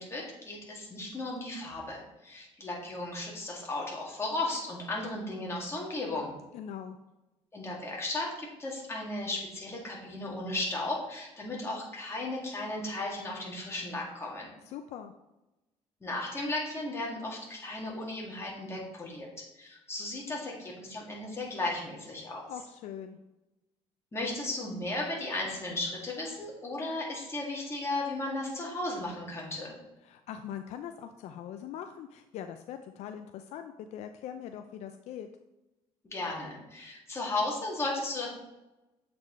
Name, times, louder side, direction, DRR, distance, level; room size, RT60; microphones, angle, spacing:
voice 1, 0.0-6.3 7.5-14.5 16.0-19.3 19.5-22.5 24.1-29.7 36.0-38.3, left 2 dB, 20° left, -3 dB, 2.0 m, -35 dB
voice 2, 6.5-7.0 14.7-15.1 22.5-23.2 30.0-35.3, left 9 dB, 70° left, 7 dB, 0.4 m, -42 dB
7.8 x 4.3 x 3.1 m, 0.98 s
cardioid pair, 95°, 12 cm